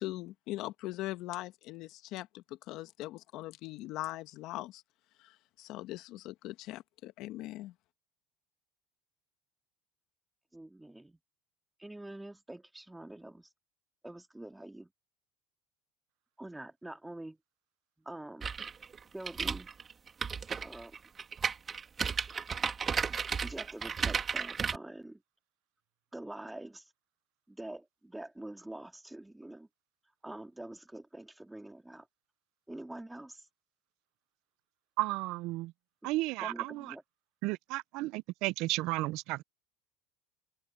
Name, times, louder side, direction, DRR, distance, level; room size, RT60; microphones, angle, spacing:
voice 1, 0.0-4.8 5.2-7.7, left 17 dB, 60° left, 1.5 m, -41 dB
voice 2, 10.5-11.2 11.8-13.5 14.0-14.9 16.4-17.4 18.0-18.5 19.1-19.7 20.6-21.0 23.4-25.2 26.1-26.9 27.5-29.7 30.2-32.1 32.7-33.5 36.0-36.1 36.4-37.0, right 1 dB, 5° right, 2.7 m, -45 dB
sound 1, 18.4-24.8, right 6 dB, 30° right, 2.3 m, -34 dB
voice 3, 35.0-35.7 36.0-36.5 37.4-39.4, right 20 dB, 65° right, 0.7 m, -33 dB
supercardioid pair, 100°, 0 cm